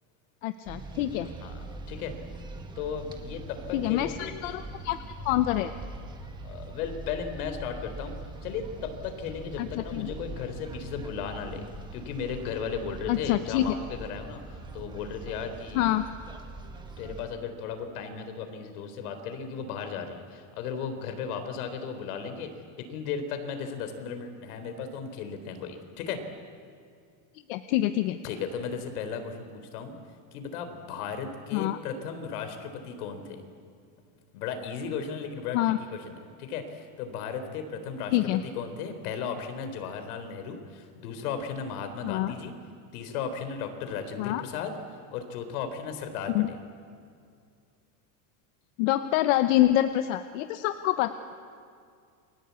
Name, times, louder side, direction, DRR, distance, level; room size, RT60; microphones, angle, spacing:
voice 1, 0.4-1.3 3.7-5.0 5.2-5.7 9.6-10.1 13.1-13.7 15.7-16.0 27.5-28.2 31.5-31.8 35.5-35.8 38.1-38.4 42.0-42.3 44.2-44.4 46.3-46.5 48.8-51.3, left 14 dB, 60° left, 9 dB, 1.1 m, -26 dB
sound 1, 0.7-17.3, right 2 dB, 10° right, 1.5 m, -42 dB
voice 2, 1.4-2.1 2.8-4.4 6.4-8.2 8.4-11.7 11.9-15.9 17.0-26.2 28.2-30.0 30.3-33.5 34.3-35.6 35.9-42.6 42.9-44.7 45.1-46.6, left 6 dB, 80° left, 7 dB, 4.0 m, -35 dB
29.5 x 23.0 x 8.4 m, 2.3 s
cardioid pair, 175°, 44 cm